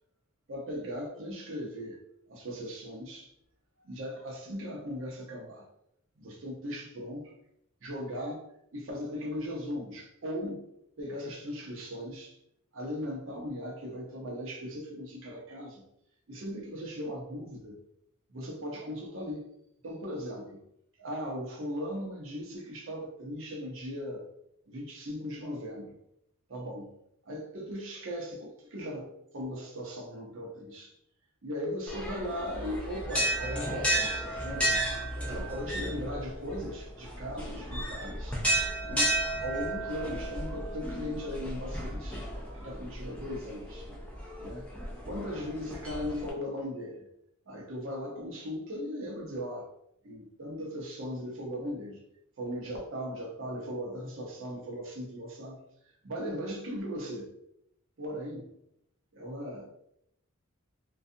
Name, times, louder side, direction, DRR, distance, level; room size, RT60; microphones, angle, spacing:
voice 1, 0.5-2.0 2.3-3.3 3.8-5.7 6.2-7.3 7.8-8.4 8.7-10.6 11.0-12.4 12.7-15.8 16.3-17.8 18.3-19.5 19.8-20.6 21.0-24.2 24.7-25.9 26.5-26.9 27.3-29.1 29.3-30.9 31.4-34.8 35.2-38.4 38.8-39.2 39.4-42.2 42.5-43.9 44.4-44.7 45.0-47.1 47.5-49.7 50.0-52.0 52.4-55.6 56.0-57.3 58.0-58.5 59.1-59.6, equal, 65° right, -1 dB, 0.6 m, -38 dB
sound 1, 31.9-46.3, right 1 dB, 5° left, 0.4 m, -33 dB
2.5 x 2.4 x 2.6 m, 0.77 s
head